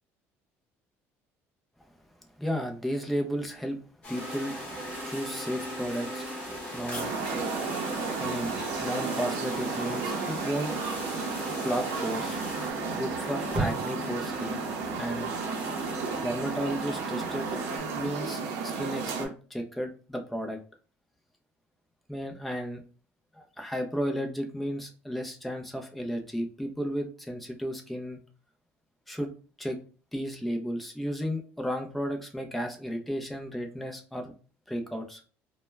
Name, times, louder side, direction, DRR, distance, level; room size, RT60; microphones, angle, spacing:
voice 1, 2.4-3.8 4.1-4.5 5.0-6.3 6.7-7.6 8.1-10.8 11.6-12.4 12.9-14.6 15.0-15.3 16.2-17.5 17.9-20.6 22.1-22.8 23.3-28.2 29.1-29.3 29.6-29.8 30.1-34.3 34.7-35.2, equal, ahead, 3 dB, 0.4 m, -33 dB
sound 1, 4.0-12.7, left 2 dB, 25° left, 0.8 m, -43 dB
sound 2, 4.1-17.8, right 1 dB, 25° right, 0.7 m, -38 dB
sound 3, 6.9-19.3, right 5 dB, 80° right, 0.5 m, -33 dB
2.1 x 2.0 x 3.2 m, 0.38 s
cardioid pair, 145°, 5 cm